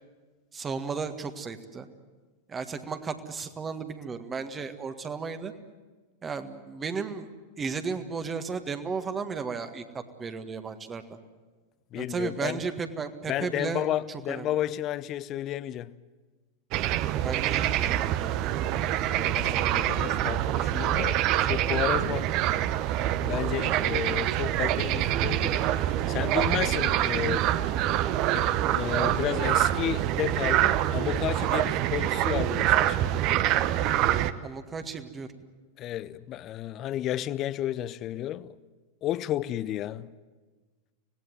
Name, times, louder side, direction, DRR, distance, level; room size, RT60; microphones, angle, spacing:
voice 1, 0.5-1.9 2.5-5.5 6.2-7.3 7.6-11.2 12.0-14.5 17.2-18.4 34.4-35.3, right 5 dB, 20° right, 1.7 m, -34 dB
voice 2, 11.9-12.6 13.3-15.9 18.7-22.3 23.2-27.5 28.3-33.1 35.8-38.5 39.0-40.1, left 12 dB, 35° left, 0.7 m, -32 dB
sound 1, 16.7-34.3, right 12 dB, 40° right, 0.9 m, -26 dB
25.5 x 18.5 x 9.3 m
figure-of-eight pair, 90°, 0 cm